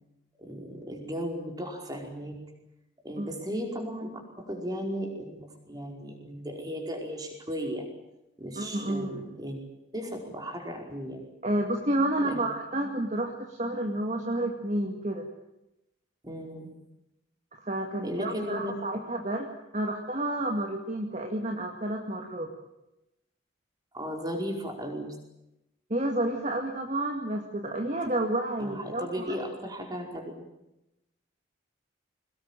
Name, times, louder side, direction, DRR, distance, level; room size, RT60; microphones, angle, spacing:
voice 1, 0.4-2.4 3.0-7.9 8.4-9.6 9.9-11.3 12.2-12.4 16.2-16.7 18.0-18.7 23.9-25.1 28.6-30.3, equal, 20° right, 2 dB, 5.0 m, -36 dB
voice 2, 8.6-9.1 11.4-15.3 17.6-19.5 19.7-22.5 25.9-29.4, right 1 dB, 35° right, 2 dB, 2.1 m, -30 dB
23.0 x 20.5 x 9.0 m, 0.90 s
head